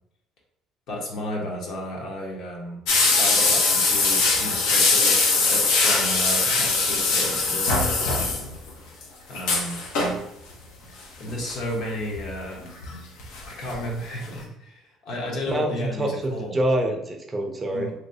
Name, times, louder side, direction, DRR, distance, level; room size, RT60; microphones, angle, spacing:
voice 1, 0.9-2.8 3.2-8.2 9.3-9.8 11.2-12.6 13.4-16.6 17.7-17.9, left 1 dB, 60° left, -1 dB, 1.1 m, -33 dB
sound 1, 2.9-8.7 9.0-9.1 9.4-10.2 11.3-11.5 12.1-13.4 13.7-13.8 14.2-14.3, left 3 dB, 85° left, 0.7 m, -21 dB
voice 2, 15.5-17.9, right 1 dB, 20° right, 3 dB, 0.5 m, -26 dB
3.0 x 3.0 x 2.7 m, 0.83 s
cardioid pair, 130°, 0 cm